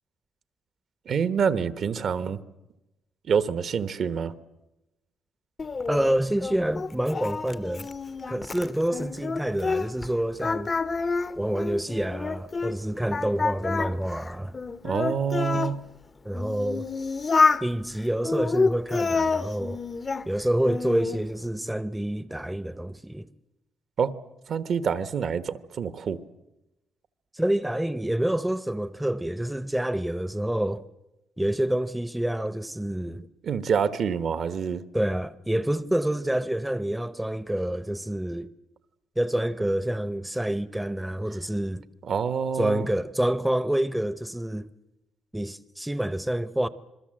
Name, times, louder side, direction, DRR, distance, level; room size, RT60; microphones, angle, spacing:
voice 1, 1.1-2.4 3.3-4.3 14.8-15.8 24.0-24.1 24.5-26.2 33.1-34.8 42.1-42.9, right 6 dB, 60° right, 1.2 m, -27 dB
Singing, 5.6-10.1 10.4-12.8 13.1-15.7 16.3-17.7 18.2-20.3 20.6-21.2, left 4 dB, 35° left, 0.8 m, -28 dB
voice 2, 5.9-7.9 8.3-10.7 11.4-14.6 16.2-16.9 17.6-19.8 20.3-23.2 27.3-30.8 31.4-33.2 34.9-38.5 39.2-41.8 42.6-44.7 45.3-46.7, right 1 dB, 5° right, 0.8 m, -27 dB
27.0 x 21.5 x 7.8 m
cardioid pair, 90°, 0 cm